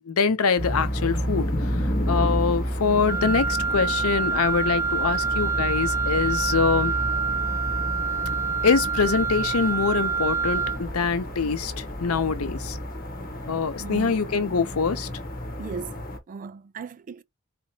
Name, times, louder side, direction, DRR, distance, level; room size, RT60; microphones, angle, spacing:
voice 1, 0.0-6.9 8.6-12.8 13.5-15.1, left 5 dB, 80° left, 0.7 m, -24 dB
sound 1, 0.6-16.2, equal, 40° left, 1.1 m, -31 dB
sound 2, 1.1-13.3, equal, 60° right, 1.3 m, -43 dB
Wind instrument woodwind instrument, 3.1-10.8, right 5 dB, 15° right, 0.7 m, -27 dB
voice 2, 13.8-14.2 15.6-17.2, right 5 dB, 40° right, 0.3 m, -37 dB
4.2 x 2.9 x 2.8 m
head